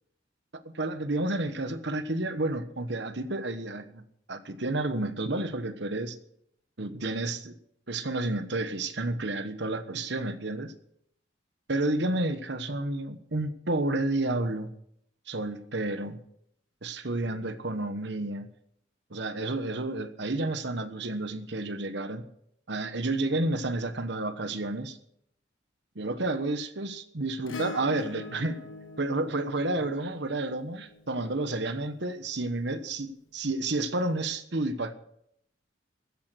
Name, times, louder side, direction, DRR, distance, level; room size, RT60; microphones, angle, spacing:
voice 1, 0.5-6.1 6.8-7.5 7.9-10.7 11.7-14.7 15.3-16.2 16.8-18.5 19.1-22.3 22.7-25.0 25.9-28.6 29.0-34.9, right 2 dB, 60° right, 11 dB, 1.2 m, -31 dB
Acoustic guitar / Strum, 27.5-32.1 33.9-34.0, left 3 dB, 90° left, 1.5 m, -43 dB
16.0 x 10.0 x 6.3 m, 0.73 s
head